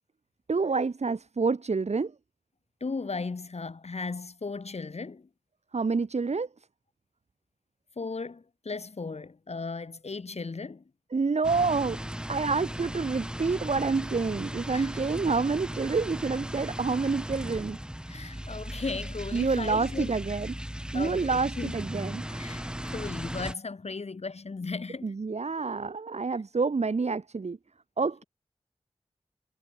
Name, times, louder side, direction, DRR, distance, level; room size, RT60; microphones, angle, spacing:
voice 1, 0.5-2.1 5.7-6.5 11.1-12.0 12.3-17.8 19.3-20.5 20.9-22.4 25.0-27.6 28.0-28.2, right 4 dB, 85° right, 2.7 m, -28 dB
voice 2, 2.8-5.3 7.9-10.8 14.7-14.9 18.1-20.1 20.9-21.7 22.4-22.6 22.9-25.1, left 4 dB, 75° left, 3.3 m, -36 dB
sound 1, 11.4-23.5, equal, 10° right, 4.4 m, -37 dB
wide cardioid pair, 60°, 11 cm